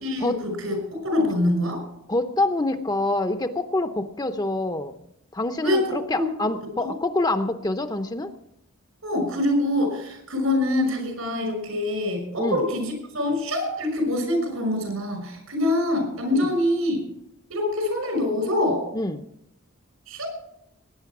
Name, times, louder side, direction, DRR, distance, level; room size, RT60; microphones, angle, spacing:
voice 1, 0.0-1.8 5.6-5.9 6.1-6.2 6.8-6.9 9.0-17.0 17.5-18.8 20.1-20.3, left 1 dB, 80° right, 5 dB, 5.8 m, -25 dB
voice 2, 2.1-4.9 5.3-8.3 12.4-12.6 16.3-16.5 18.9-19.2, left 2 dB, 20° left, 8 dB, 0.7 m, -26 dB
19.0 x 9.8 x 6.0 m, 0.78 s
head